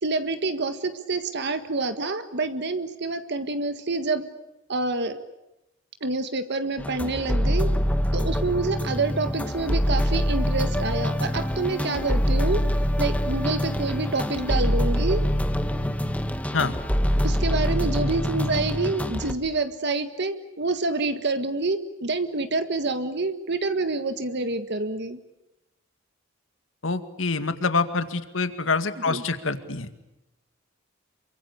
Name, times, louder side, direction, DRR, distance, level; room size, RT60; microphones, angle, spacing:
voice 1, 0.0-4.3 4.7-5.2 6.0-7.7 8.1-12.6 13.0-15.2 17.2-25.2 29.1-29.2, right 3 dB, 60° right, 9 dB, 1.7 m, -27 dB
sound 1, 6.8-19.3, equal, 5° left, 1.7 m, -25 dB
voice 2, 26.8-29.9, left 4 dB, 75° left, 10 dB, 2.1 m, -26 dB
28.5 x 24.0 x 8.5 m, 0.92 s
head